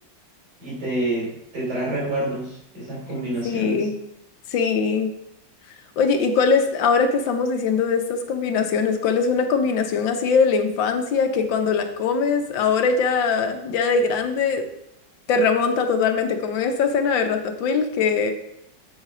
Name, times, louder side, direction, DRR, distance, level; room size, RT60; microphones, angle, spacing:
voice 1, 0.6-3.9, right 1 dB, 60° right, -4 dB, 4.0 m, -28 dB
voice 2, 3.4-4.0 4.5-5.1 6.0-14.6 15.3-18.3, left 5 dB, 80° left, 6 dB, 1.6 m, -21 dB
7.9 x 4.3 x 4.8 m, 0.79 s
omnidirectional pair, 2.0 m